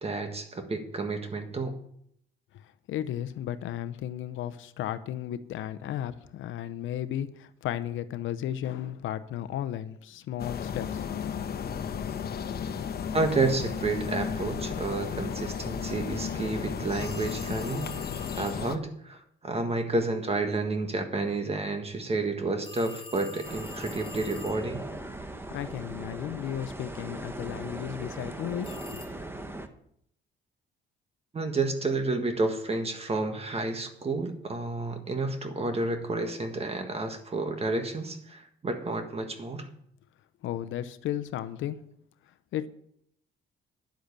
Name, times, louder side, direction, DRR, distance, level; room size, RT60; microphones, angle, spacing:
voice 1, 0.0-1.8 13.1-17.9 18.3-24.8 31.3-39.7, right 3 dB, 30° right, 7 dB, 1.6 m, -30 dB
voice 2, 2.6-11.2 25.5-29.0 40.4-41.8 42.5-42.7, left 11 dB, 80° left, 13 dB, 0.7 m, -34 dB
sound 1, 10.4-18.8, left 7 dB, 55° left, 1.0 m, -34 dB
sound 2, 17.0-18.7 22.6-24.9 28.6-29.1, left 4 dB, 25° left, 1.8 m, -45 dB
sound 3, 23.4-29.7, right 1 dB, 10° right, 1.2 m, -39 dB
10.5 x 7.9 x 6.8 m, 0.70 s
cardioid pair, 90°, 20 cm